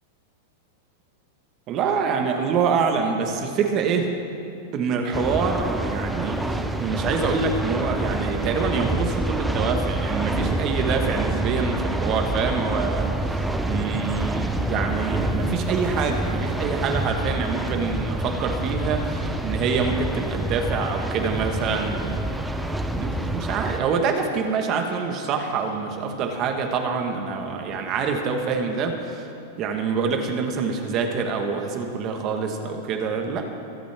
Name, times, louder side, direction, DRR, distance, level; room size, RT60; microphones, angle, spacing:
voice 1, 1.7-4.2 4.7-22.2 22.9-29.2 29.6-33.5, right 5 dB, 30° right, 4 dB, 1.3 m, -26 dB
sound 1, 5.1-23.8, right 1 dB, 5° right, 0.5 m, -27 dB
23.5 x 8.6 x 3.5 m, 2.7 s
supercardioid pair, 160°, 0 cm